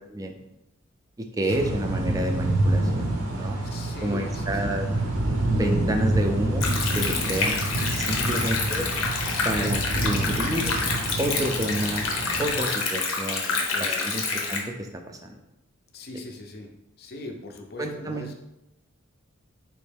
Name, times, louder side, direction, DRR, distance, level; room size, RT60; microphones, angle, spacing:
voice 1, 1.2-3.6 4.0-4.9 5.5-6.7 6.9-7.6 7.9-8.9 9.4-10.7 11.2-12.0 12.4-13.5 13.7-15.2 17.8-18.3, right 1 dB, 15° right, 4 dB, 0.3 m, -29 dB
sound 1, 1.5-12.6, right 2 dB, 90° right, 0.7 m, -27 dB
voice 2, 3.6-4.8 8.1-8.5 13.5-14.2 15.9-16.7 17.0-18.3, left 2 dB, 50° left, 3 dB, 0.5 m, -40 dB
Stream, 6.6-14.6, left 4 dB, 85° left, 0.8 m, -28 dB
4.3 x 3.1 x 3.3 m, 0.90 s
head